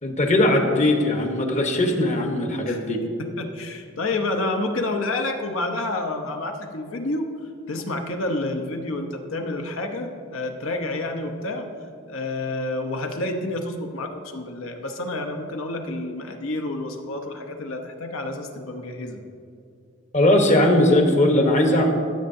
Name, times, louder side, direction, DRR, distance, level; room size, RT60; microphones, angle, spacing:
voice 1, 0.0-3.0 20.1-21.9, left 1 dB, 35° left, 3 dB, 1.0 m, -19 dB
voice 2, 3.2-7.3 7.7-11.7 12.1-19.2, left 2 dB, 70° left, 4 dB, 0.9 m, -29 dB
15.5 x 7.7 x 2.7 m, 2.4 s
head